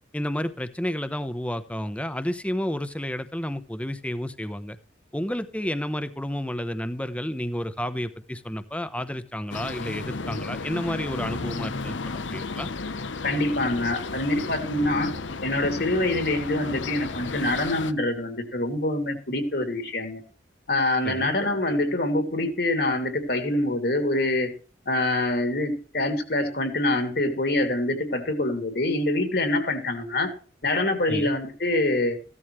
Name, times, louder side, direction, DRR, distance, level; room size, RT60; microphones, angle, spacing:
voice 1, 0.1-4.8 5.1-12.7 21.0-21.3 31.1-31.3, equal, 5° left, 12 dB, 0.9 m, -31 dB
sound 1, 9.5-17.9, left 3 dB, 90° left, 0.9 m, -33 dB
voice 2, 13.2-15.1 15.4-20.2 20.7-24.5 24.9-30.3 30.6-32.2, left 1 dB, 60° left, 7 dB, 2.7 m, -25 dB
15.5 x 12.5 x 3.2 m, 0.38 s
head